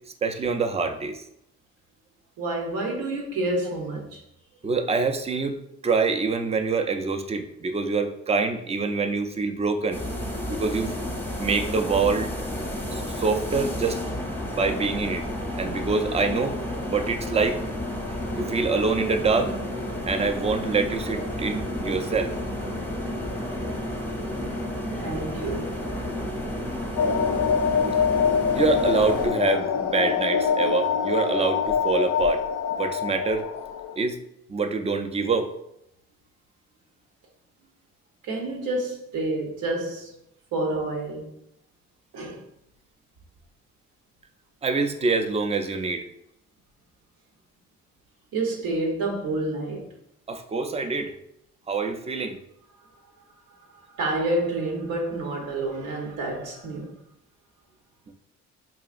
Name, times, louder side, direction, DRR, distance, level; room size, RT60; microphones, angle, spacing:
voice 1, 0.2-1.2 4.6-10.0 10.5-10.9 11.4-12.3 12.9-14.0 14.5-15.2 15.6-16.6 16.9-17.6 18.4-19.5 20.1-22.3 28.5-32.4 32.7-33.4 34.0-34.2 34.5-35.5 44.6-46.0 50.3-51.1 51.7-52.4, right 4 dB, 20° right, 0.4 m, -25 dB
voice 2, 2.4-4.2 24.9-25.7 38.2-40.1 40.5-41.3 42.1-42.4 48.3-49.9 53.7-57.0, right 2 dB, 85° right, 1.0 m, -29 dB
sound 1, 9.9-29.3, left 1 dB, 5° left, 0.7 m, -31 dB
sound 2, 27.0-33.9, left 6 dB, 80° left, 0.5 m, -25 dB
4.7 x 2.8 x 2.5 m
cardioid pair, 90°, 30 cm